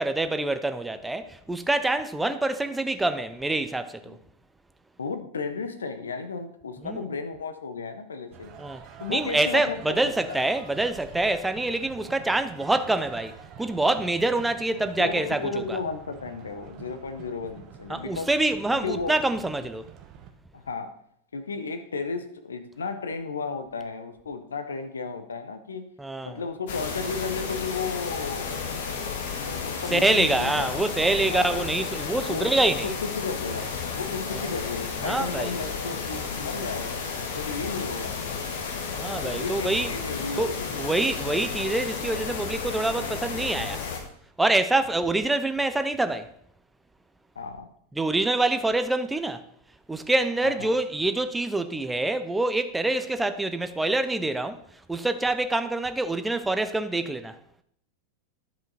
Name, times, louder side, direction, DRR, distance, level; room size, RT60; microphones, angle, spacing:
voice 1, 0.0-4.2 6.8-7.1 8.6-8.8 9.1-15.8 17.9-19.8 26.0-26.4 29.9-32.9 34.3-34.5 35.0-35.6 38.9-39.9 40.4-43.8 44.4-46.3 48.0-49.4 49.9-54.6 54.9-57.4, right 2 dB, 5° right, 0.5 m, -26 dB
voice 2, 5.0-8.5 9.0-10.0 10.3-10.4 15.0-18.3 18.8-19.1 20.5-20.9 21.3-25.9 26.2-28.8 29.5-30.7 31.3-31.6 32.2-32.5 32.8-33.7 34.0-37.0 37.3-38.1 39.2-41.0 47.4-47.7 50.4-50.7, left 4 dB, 70° left, 0.7 m, -33 dB
sound 1, 8.3-20.3, right 8 dB, 35° right, 0.9 m, -46 dB
sound 2, 26.7-44.0, left 5 dB, 55° left, 1.2 m, -32 dB
10.5 x 5.1 x 4.0 m
figure-of-eight pair, 90°, 0 cm